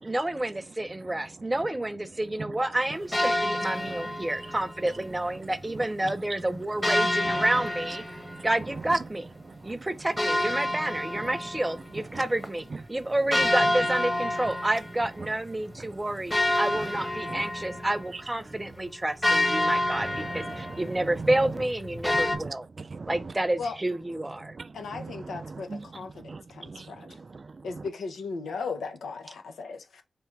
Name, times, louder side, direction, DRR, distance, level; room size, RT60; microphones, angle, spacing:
voice 1, 0.0-8.0 8.4-9.3 9.6-22.7 23.1-24.6, right 1 dB, 25° right, 0.7 m, -29 dB
sound 1, 3.1-4.8 6.8-9.3 10.2-12.2 12.4-12.5 13.3-15.3 15.7-15.8 16.3-22.4, left 1 dB, 20° left, 1.1 m, -28 dB
voice 2, 8.1-8.5 9.5-9.9 10.7-10.8 11.1-11.3 12.1-12.2 12.7-12.8 15.2-15.3 15.8-15.9 16.4-16.5 17.3-17.5 19.9-21.4 22.1-23.3 24.4-27.9, right 4 dB, 55° right, 0.4 m, -40 dB
voice 3, 24.7-27.2 27.6-30.0, left 4 dB, 90° left, 0.7 m, -37 dB
4.2 x 3.5 x 3.3 m
cardioid pair, 40°, 0 cm